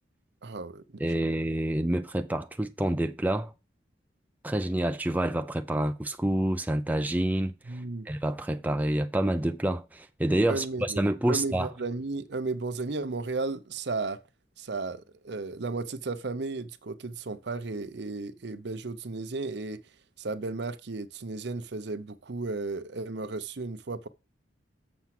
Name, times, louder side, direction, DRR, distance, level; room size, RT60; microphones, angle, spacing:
voice 1, 0.4-1.4 7.7-8.1 10.5-14.2 14.6-19.8 20.2-24.1, right 3 dB, 60° right, 0.7 m, -34 dB
voice 2, 1.0-3.5 4.4-11.7, right 1 dB, 10° right, 0.5 m, -28 dB
7.2 x 5.9 x 5.9 m
head